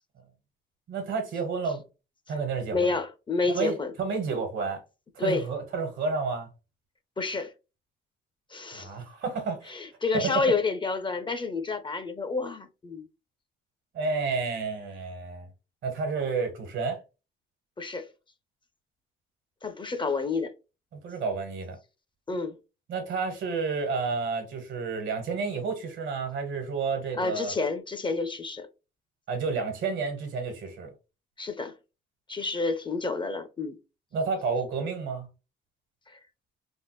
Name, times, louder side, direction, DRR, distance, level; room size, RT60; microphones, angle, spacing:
voice 1, 0.9-1.8 2.3-2.9 3.5-4.8 5.1-6.5 8.7-9.7 10.1-10.4 13.9-15.5 15.8-17.0 20.9-21.8 22.9-27.5 29.3-30.9 34.1-35.3, right 4 dB, 75° right, 1.2 m, -30 dB
voice 2, 2.7-3.9 5.2-5.4 7.2-7.5 8.5-8.9 9.7-13.1 17.8-18.1 19.6-20.5 22.3-22.6 27.2-28.7 31.4-31.7 32.3-33.8 36.1-36.2, left 3 dB, 25° left, 0.5 m, -29 dB
3.5 x 2.0 x 3.0 m
cardioid pair, 90°, 20 cm